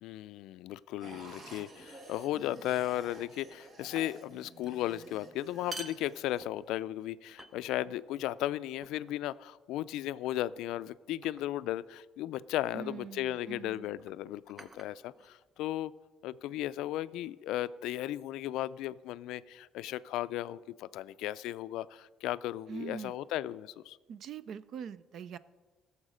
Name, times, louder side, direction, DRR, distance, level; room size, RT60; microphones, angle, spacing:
voice 1, 0.0-15.9 16.2-24.0, left 14 dB, 90° left, 16 dB, 0.3 m, -36 dB
sound 1, 1.0-6.4, right 2 dB, 35° right, 1.4 m, -52 dB
sound 2, 1.6-1.9 2.7-3.2 3.5-4.4 4.6-4.9 5.5-6.9 7.4-8.0 8.8-9.3 10.2-10.6 11.2-11.6 12.8-13.0 13.9-15.7, right 2 dB, 20° right, 0.7 m, -50 dB
voice 2, 12.7-13.9 22.7-23.1 24.1-25.4, right 7 dB, 55° right, 17 dB, 0.4 m, -43 dB
15.5 x 7.2 x 5.0 m, 1.3 s
cardioid pair, 150°, 0 cm